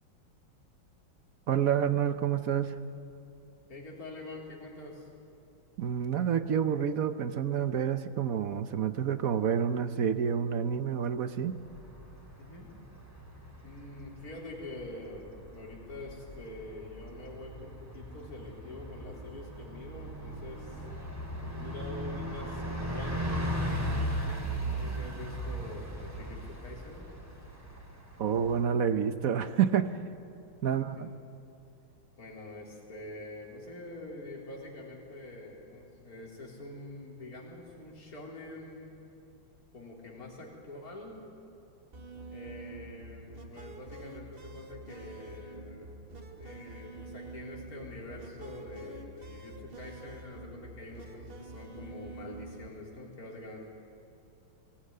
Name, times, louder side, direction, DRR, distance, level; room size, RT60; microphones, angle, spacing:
voice 1, 1.5-2.7 5.8-11.6 28.2-30.0 30.6-31.1, right 8 dB, 60° right, 11 dB, 1.0 m, -28 dB
voice 2, 3.7-5.1 12.4-12.7 13.6-20.8 21.5-27.1 30.7-31.1 32.2-38.9 39.7-41.2 42.3-46.0 46.3-53.6, left 2 dB, 45° left, -2 dB, 4.3 m, -45 dB
Bus, 11.6-28.7, equal, 10° right, 2.6 m, -38 dB
sound 1, 41.9-52.7, right 2 dB, 30° right, 1.3 m, -46 dB
23.0 x 18.5 x 9.7 m, 2.9 s
omnidirectional pair, 2.2 m